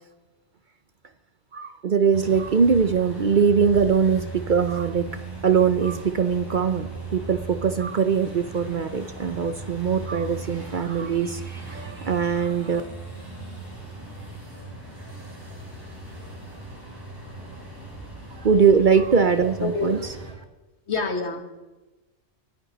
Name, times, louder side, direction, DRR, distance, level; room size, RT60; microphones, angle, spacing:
voice 1, 1.5-5.1 5.4-12.8 18.4-20.0, right 6 dB, 50° right, 10 dB, 0.7 m, -22 dB
sound 1, 2.1-20.3, right 3 dB, 20° right, 5.7 m, -38 dB
voice 2, 19.6-20.0 20.9-21.4, left 4 dB, 65° left, 6 dB, 1.8 m, -26 dB
25.5 x 10.0 x 4.0 m, 1.1 s
omnidirectional pair, 1.2 m